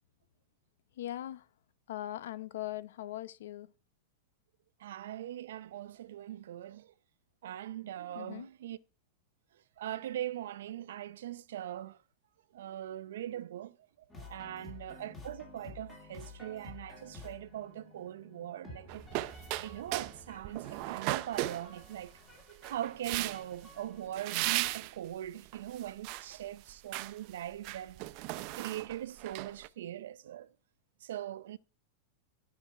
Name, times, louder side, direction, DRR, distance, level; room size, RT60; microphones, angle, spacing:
voice 1, 1.0-1.4 1.9-3.7 8.1-8.5, left 13 dB, 80° left, 0.7 m, -40 dB
voice 2, 4.8-6.9 7.4-8.8 9.8-12.0 12.5-13.8 14.1-19.1 19.3-22.1 22.5-30.5 31.0-31.6, right 12 dB, 85° right, 0.6 m, -41 dB
sound 1, 14.1-24.8, left 2 dB, 15° left, 2.6 m, -52 dB
sound 2, 18.9-20.2 20.4-22.1 22.6-23.6 24.1-24.9 25.5-26.4 26.7-27.1 27.5-29.7, right 18 dB, 40° right, 0.5 m, -36 dB
12.5 x 6.0 x 5.7 m
supercardioid pair, 165°, 0 cm